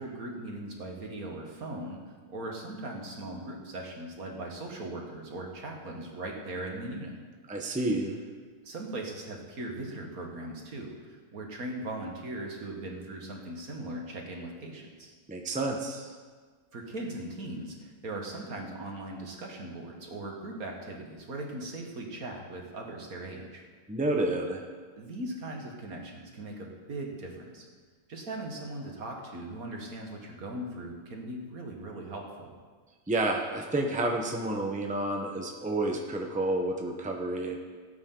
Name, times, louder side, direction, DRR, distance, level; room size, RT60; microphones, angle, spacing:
voice 1, 0.0-2.0 2.3-7.2 8.6-15.1 16.7-23.7 25.0-27.7 28.1-32.5, right 1 dB, 70° right, 0 dB, 2.1 m, -39 dB
voice 2, 7.5-8.2 15.3-16.1 23.9-24.6 33.1-37.6, right 2 dB, 5° right, 1 dB, 1.0 m, -30 dB
17.5 x 8.8 x 3.9 m, 1.5 s
omnidirectional pair, 1.6 m